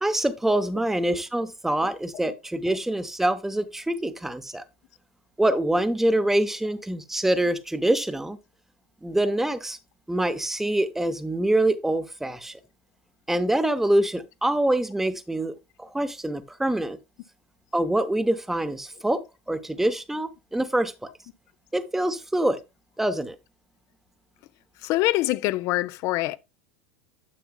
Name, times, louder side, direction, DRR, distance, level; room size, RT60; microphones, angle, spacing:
voice 1, 0.0-4.6 5.4-8.4 9.0-9.8 10.1-12.5 13.3-15.5 15.8-17.0 17.7-19.2 19.5-21.1 21.7-22.6 23.0-23.3, right 1 dB, 5° right, 0.8 m, -25 dB
voice 2, 24.8-26.4, left 17 dB, 55° left, 0.6 m, -24 dB
9.4 x 6.9 x 2.2 m
hypercardioid pair, 90°, 6 cm